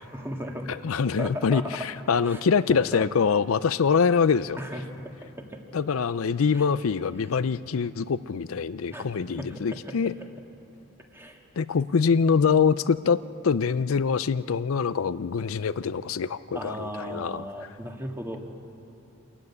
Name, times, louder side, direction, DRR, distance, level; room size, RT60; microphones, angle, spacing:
voice 1, 0.1-0.8 1.1-1.9 2.2-2.4 2.7-3.0 4.6-5.6 6.5-6.7 7.2-7.3 8.9-9.1 9.4-10.0 11.1-11.4 16.5-18.4, equal, 10° right, 2 dB, 1.8 m, -36 dB
voice 2, 0.8-4.6 5.7-10.1 11.6-13.2 13.4-17.4, left 6 dB, 85° left, 15 dB, 0.5 m, -24 dB
26.0 x 14.5 x 9.7 m, 2.7 s
head